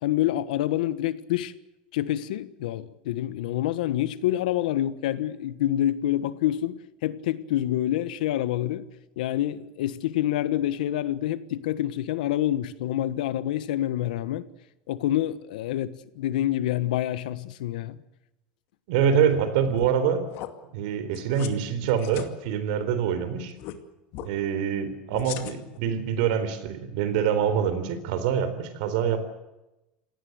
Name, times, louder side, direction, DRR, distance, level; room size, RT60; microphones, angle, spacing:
voice 1, 0.0-1.5 1.9-8.9 9.2-14.4 14.9-18.0, left 13 dB, 90° left, 1.4 m, -27 dB
voice 2, 18.9-20.3 20.7-23.5 24.2-29.3, right 8 dB, 75° right, 3.9 m, -25 dB
sound 1, 19.7-20.0 20.3-20.5 21.1-21.5 21.8-22.3 23.6-23.8 24.1-24.3 25.1-25.8, left 14 dB, 65° left, 2.3 m, -38 dB
27.5 x 18.0 x 8.0 m
supercardioid pair, 115°, 4 cm